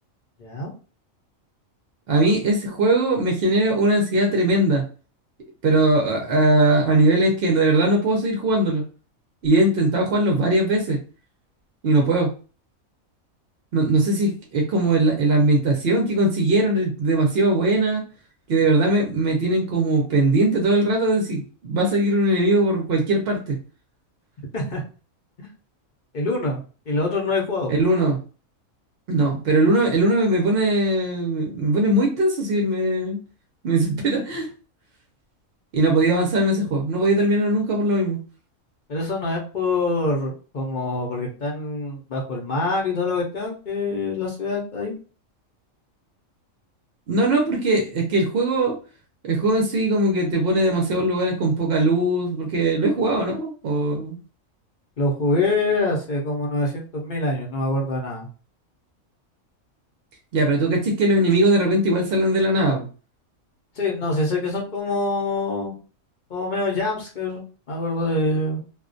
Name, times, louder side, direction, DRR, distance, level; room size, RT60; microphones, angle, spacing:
voice 1, 0.4-0.7 24.5-24.8 25.4-25.5 26.1-26.6 26.9-27.7 38.9-44.9 55.0-58.3 63.8-65.7 66.3-68.6, left 2 dB, 45° left, -1 dB, 0.6 m, -25 dB
voice 2, 2.1-4.8 5.6-8.8 9.4-11.0 11.8-12.3 13.7-18.0 18.5-23.6 27.7-28.2 29.1-33.2 33.6-34.5 35.7-38.2 47.1-48.8 49.2-54.2 60.3-62.9, right 2 dB, 60° right, 1 dB, 0.7 m, -20 dB
2.4 x 2.1 x 2.5 m, 0.36 s
omnidirectional pair, 1.4 m